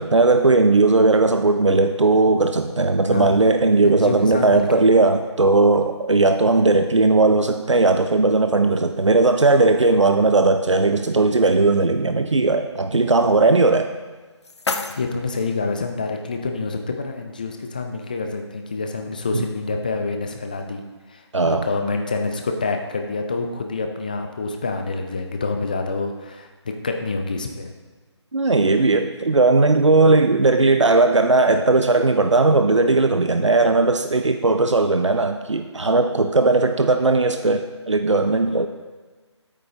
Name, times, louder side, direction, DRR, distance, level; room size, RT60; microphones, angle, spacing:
voice 1, 0.0-13.9 19.3-19.4 21.3-21.7 28.3-38.7, right 3 dB, 85° right, 7 dB, 0.6 m, -17 dB
voice 2, 3.1-3.5 3.8-4.8 14.7-20.8 21.1-27.7 38.2-38.6, left 3 dB, 15° left, 4 dB, 0.4 m, -27 dB
sound 1, 13.9-15.9, left 3 dB, 65° left, 0.7 m, -32 dB
9.9 x 8.5 x 2.9 m, 1.3 s
figure-of-eight pair, 160°, 15 cm